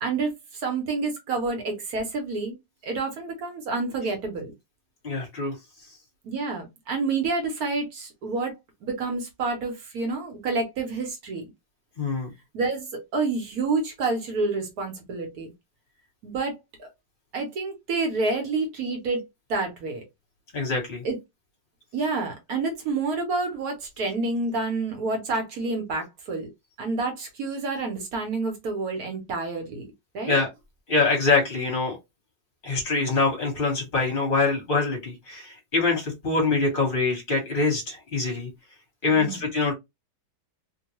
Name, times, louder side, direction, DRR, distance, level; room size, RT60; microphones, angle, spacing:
voice 1, 0.0-2.6 2.8-4.5 6.2-8.5 8.8-11.5 12.5-12.9 13.1-15.5 16.2-16.5 16.8-16.9 17.3-19.2 19.5-20.0 21.0-21.2 21.9-26.5 26.8-29.9 30.1-30.4 39.1-39.4, right 3 dB, 60° right, 1.2 m, -28 dB
voice 2, 5.0-5.6 12.0-12.3 20.5-21.0 30.3-30.5 30.9-32.0 32.6-38.5 39.0-39.7, left 3 dB, 30° left, 1.3 m, -24 dB
3.0 x 2.2 x 2.8 m
omnidirectional pair, 2.0 m